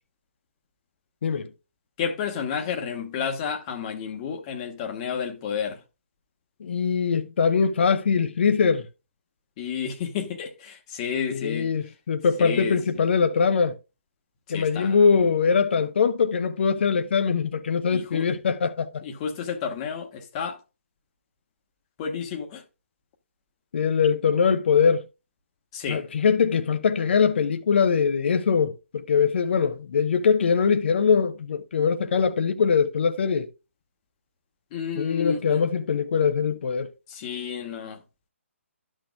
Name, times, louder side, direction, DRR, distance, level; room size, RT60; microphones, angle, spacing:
voice 1, 2.0-5.8 9.6-11.7 12.4-12.8 14.5-15.0 17.9-18.2 19.0-20.6 22.0-22.6 25.7-26.0 34.7-35.6 37.1-38.0, left 7 dB, 30° left, 1.2 m, -31 dB
voice 2, 6.6-8.9 11.3-13.7 14.5-19.0 23.7-25.0 25.9-33.5 34.9-36.9, left 6 dB, 55° left, 0.8 m, -22 dB
12.5 x 6.3 x 2.3 m
figure-of-eight pair, 140°, 7 cm